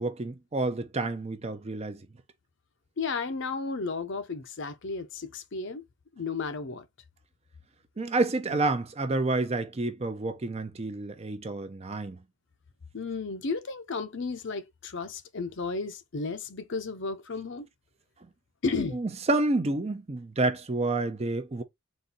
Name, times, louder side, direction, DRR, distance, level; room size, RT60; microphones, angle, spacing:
voice 1, 0.0-2.0 8.0-12.2 18.9-21.6, right 2 dB, 30° right, 0.5 m, -29 dB
voice 2, 3.0-5.8 6.2-6.9 12.9-17.7 18.6-19.0, left 4 dB, 55° left, 0.6 m, -33 dB
4.1 x 2.6 x 3.8 m
head